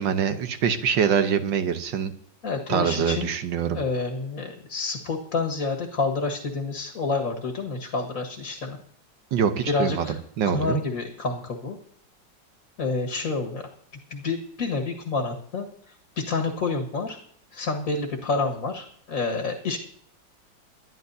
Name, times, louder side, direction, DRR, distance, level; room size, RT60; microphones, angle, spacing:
voice 1, 0.0-2.1 2.7-3.8 9.3-10.8, right 7 dB, 75° right, 9 dB, 1.7 m, -24 dB
voice 2, 2.4-3.3 3.7-8.8 9.6-10.2 10.4-11.8 12.8-13.6 14.1-17.2 17.5-19.8, left 4 dB, 50° left, 3 dB, 2.0 m, -28 dB
22.0 x 12.5 x 2.8 m, 0.64 s
omnidirectional pair, 2.0 m